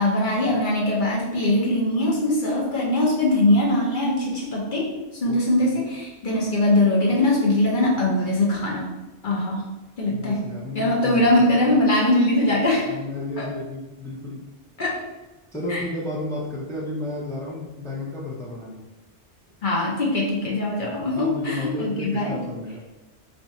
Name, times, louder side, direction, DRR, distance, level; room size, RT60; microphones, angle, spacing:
voice 1, 0.0-4.9 5.2-8.9 9.2-9.6 10.0-10.5 10.7-12.9 13.4-13.5 14.8-15.0 15.7-15.8 19.6-22.4, left 1 dB, 50° left, -3 dB, 0.8 m, -21 dB
voice 2, 5.3-5.9 10.1-11.7 12.9-14.4 15.5-18.8 21.0-22.8, left 2 dB, 5° left, -4 dB, 0.4 m, -32 dB
2.6 x 2.3 x 4.1 m, 1.1 s
omnidirectional pair, 1.2 m